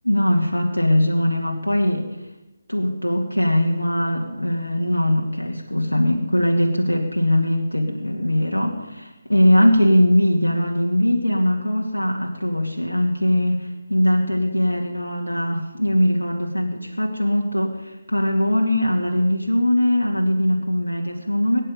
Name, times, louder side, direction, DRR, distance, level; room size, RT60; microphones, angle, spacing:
voice 1, 0.0-2.1 2.7-21.6, left 1 dB, 85° left, 0 dB, 2.5 m, -21 dB
22.0 x 10.0 x 5.5 m, 1.0 s
figure-of-eight pair, 150°, 0 cm